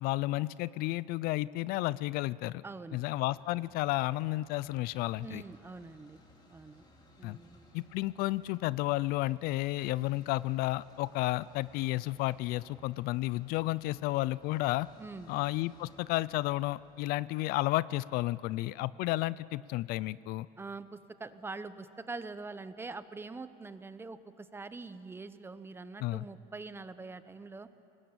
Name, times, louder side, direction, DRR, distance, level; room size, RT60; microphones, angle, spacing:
voice 1, 0.0-2.6 2.9-5.4 7.2-7.4 7.7-14.9 15.3-20.5 26.0-26.2, left 18 dB, 65° left, 19 dB, 0.5 m, -32 dB
voice 2, 2.6-3.0 5.2-6.2 6.5-6.8 7.2-7.6 15.0-15.3 20.6-27.7, right 3 dB, 15° right, 12 dB, 0.9 m, -44 dB
sound 1, 2.7-17.1, left 1 dB, 25° left, 3.9 m, -62 dB
24.5 x 19.5 x 8.8 m, 2.7 s
cardioid pair, 125°, 16 cm